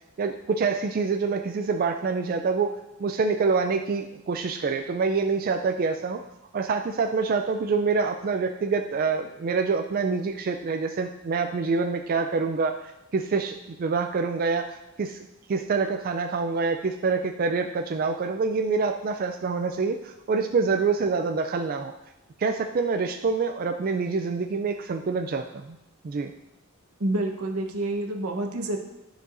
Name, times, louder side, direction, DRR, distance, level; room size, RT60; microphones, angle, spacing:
voice 1, 0.2-2.7 3.0-6.2 6.5-21.9 22.4-25.8 26.0-26.3, right 4 dB, 40° right, 5 dB, 0.3 m, -26 dB
voice 2, 27.0-28.8, right 1 dB, 85° right, 3 dB, 1.0 m, -28 dB
12.5 x 4.7 x 2.6 m, 0.92 s
head